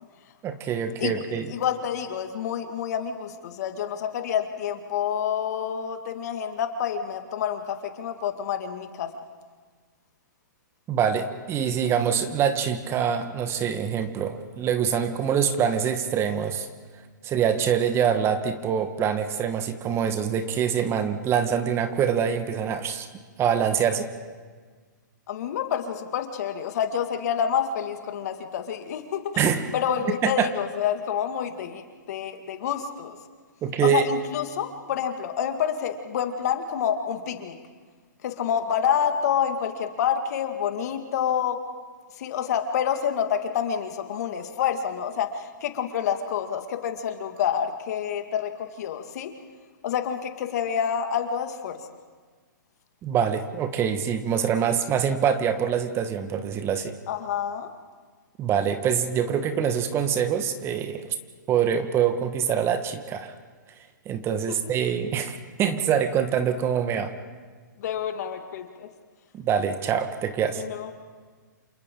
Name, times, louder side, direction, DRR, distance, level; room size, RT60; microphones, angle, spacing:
voice 1, 0.4-1.5 10.9-16.7 17.2-23.1 23.4-24.1 29.4-29.7 30.2-30.5 33.6-34.0 53.0-57.0 58.4-61.1 61.5-63.3 64.0-67.1 69.3-70.6, right 8 dB, 25° right, 9 dB, 1.4 m, -25 dB
voice 2, 1.5-9.1 25.3-29.5 29.7-33.2 33.8-37.6 38.2-41.6 42.2-49.3 49.8-51.8 57.1-57.7 64.5-64.6 67.8-68.9 70.6-70.9, left 8 dB, 55° left, 6 dB, 2.1 m, -28 dB
29.0 x 27.5 x 3.8 m, 1.5 s
hypercardioid pair, 125°, 10 cm